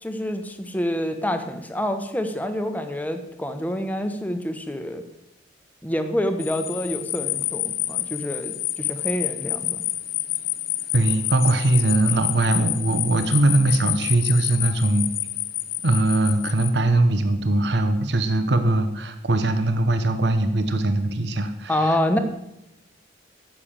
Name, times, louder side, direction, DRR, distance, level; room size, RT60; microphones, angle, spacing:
voice 1, 0.0-5.0 5.8-9.8 21.7-22.2, left 1 dB, 10° left, 7 dB, 1.0 m, -27 dB
sound 1, 6.4-16.7, left 14 dB, 50° left, 0.6 m, -28 dB
voice 2, 10.9-15.1 15.8-22.2, right 2 dB, 65° right, 9 dB, 0.9 m, -21 dB
10.0 x 6.7 x 7.4 m, 0.85 s
head